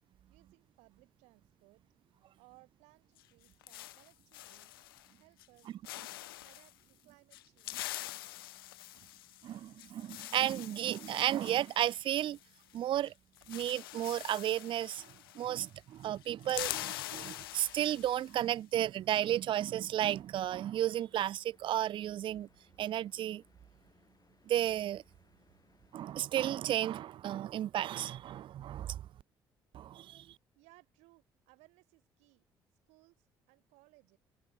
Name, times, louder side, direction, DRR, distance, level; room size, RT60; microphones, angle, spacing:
voice 1, 0.3-1.8 2.4-4.7 5.2-5.7 6.4-8.0 30.5-32.4 32.7-34.2, right 24 dB, 70° right, 3.3 m, -64 dB
sound 1, 3.2-5.1 5.4-5.6 5.8-6.7 7.3-12.8 13.0-13.1 13.4-15.8 16.0-18.4, left 17 dB, 80° left, 0.5 m, -45 dB
voice 2, 9.4-12.4 12.7-13.1 13.5-15.1 15.3-22.5 22.8-23.4 24.5-25.0 25.9-29.0 29.7-30.3, right 12 dB, 45° right, 0.4 m, -33 dB
sound 2, 19.0-27.0, left 4 dB, 30° left, 6.2 m, -69 dB
open air
figure-of-eight pair, 45°, 12 cm